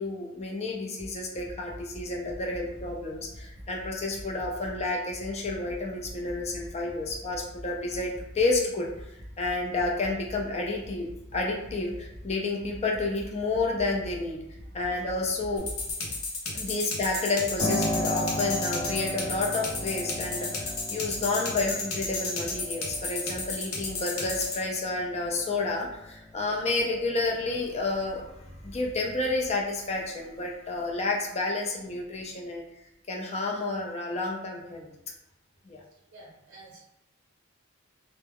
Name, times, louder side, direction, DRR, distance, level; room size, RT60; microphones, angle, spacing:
voice 1, 0.0-8.9 9.4-14.4 14.7-15.7 16.5-32.6 33.1-34.9 35.7-35.8, left 3 dB, 30° left, 0 dB, 0.4 m, -30 dB
sound 1, 1.0-15.9, equal, 60° left, 0.9 m, -45 dB
sound 2, 15.6-24.6, left 3 dB, 85° left, 0.7 m, -32 dB
Piano, 17.6-26.0 26.4-27.5, left 1 dB, 10° right, 0.8 m, -36 dB
voice 2, 36.1-36.8, right 2 dB, 60° right, -4 dB, 0.6 m, -50 dB
2.2 x 2.0 x 3.5 m, 0.85 s
head